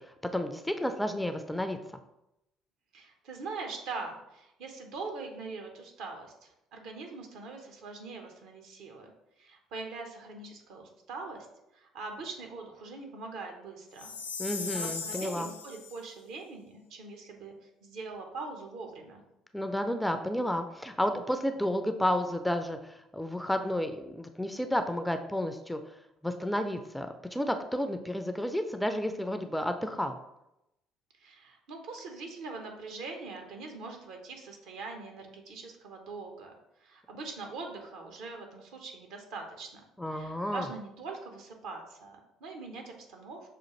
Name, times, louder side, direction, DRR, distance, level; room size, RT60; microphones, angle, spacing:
voice 1, 0.3-1.8 14.4-15.5 19.5-25.8 26.2-30.2 40.0-40.7, left 1 dB, 5° left, 7 dB, 0.4 m, -31 dB
voice 2, 2.9-11.5 11.7-14.1 14.7-19.2 31.1-36.5 36.8-39.8 40.1-43.5, right 3 dB, 60° right, 3 dB, 0.8 m, -42 dB
Chime, 14.0-16.0, left 4 dB, 85° left, 0.4 m, -38 dB
6.2 x 2.4 x 2.9 m, 0.87 s
figure-of-eight pair, 55°, 0 cm